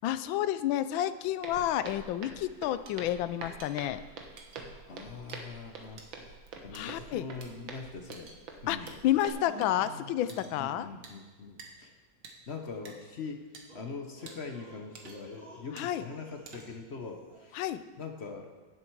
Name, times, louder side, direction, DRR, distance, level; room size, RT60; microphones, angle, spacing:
voice 1, 0.0-4.0 6.7-7.3 8.7-10.9 15.7-16.0 17.5-17.8, left 12 dB, 90° left, 14 dB, 1.4 m, -30 dB
Walk footsteps, 1.4-9.3, right 4 dB, 80° right, 2.0 m, -46 dB
sound 1, 2.9-3.0 3.6-3.7 4.4-4.6 5.3-5.4 6.0-6.1 6.7-6.8 7.4-7.5 8.1-8.4 8.9-9.0 9.6-9.7 10.3-10.6 11.0-11.2 11.6-11.7 12.2-12.4 12.9-13.0 13.5-13.6 14.3-14.4 14.9-15.3 15.8-15.9 16.5-16.9, right 4 dB, 65° right, 1.9 m, -49 dB
voice 2, 4.9-6.3 6.6-8.3 8.6-8.9 10.4-11.9 12.5-13.4 13.7-17.6 18.0-18.5, left 4 dB, 45° left, 4 dB, 0.9 m, -42 dB
sound 2, 9.1-10.3 10.7-10.9 12.8-13.0 13.7-16.7 17.0-17.5, equal, 35° right, 4.0 m, -51 dB
16.0 x 7.8 x 4.6 m, 1.3 s
omnidirectional pair, 2.1 m